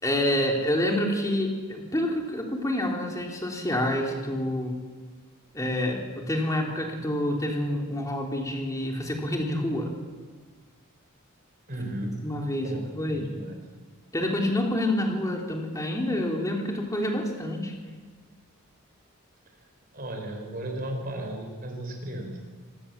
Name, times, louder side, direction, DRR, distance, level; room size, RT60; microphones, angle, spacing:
voice 1, 0.0-4.8 5.5-9.9 12.2-13.3 14.1-17.7, left 1 dB, 15° left, 1 dB, 3.2 m, -28 dB
voice 2, 11.7-12.2 12.6-13.6 19.5-19.7 19.9-22.4, right 1 dB, 40° right, 2 dB, 5.1 m, -35 dB
26.0 x 18.5 x 7.3 m, 1.5 s
head